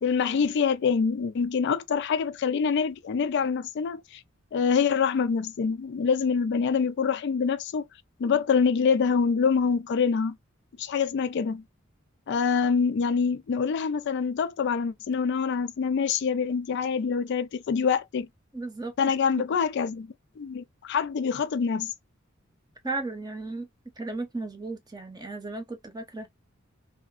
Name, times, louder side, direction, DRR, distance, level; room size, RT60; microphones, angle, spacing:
voice 1, 0.0-4.2 4.5-7.8 8.2-10.4 10.8-11.6 12.3-18.3 19.0-21.9, left 6 dB, 55° left, 0.3 m, -25 dB
voice 2, 18.5-19.4 22.8-23.7 24.0-26.3, right 3 dB, 20° right, 0.7 m, -35 dB
2.8 x 2.5 x 2.3 m
head